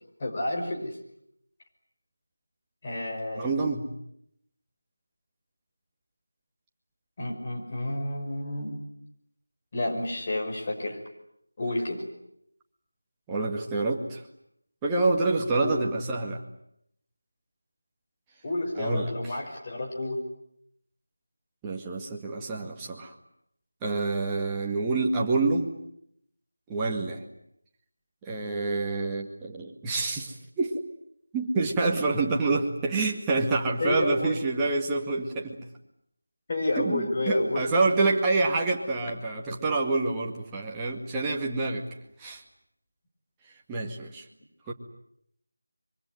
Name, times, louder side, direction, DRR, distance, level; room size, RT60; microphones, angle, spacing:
voice 1, 0.2-1.0 2.8-3.5 7.2-8.8 9.7-11.0 11.6-12.0 15.6-15.9 18.4-20.2 33.8-34.5 36.5-37.6, left 1 dB, 30° left, 1 dB, 5.7 m, -30 dB
voice 2, 3.4-3.9 13.3-14.2 14.8-16.4 18.8-19.3 21.6-23.1 23.8-25.7 26.7-27.2 28.2-30.8 31.3-35.6 36.8-41.9 42.2-42.4 43.7-44.2 44.7-44.8, right 3 dB, 10° right, -1 dB, 2.1 m, -27 dB
26.0 x 24.0 x 9.5 m, 0.73 s
figure-of-eight pair, 170°, 0 cm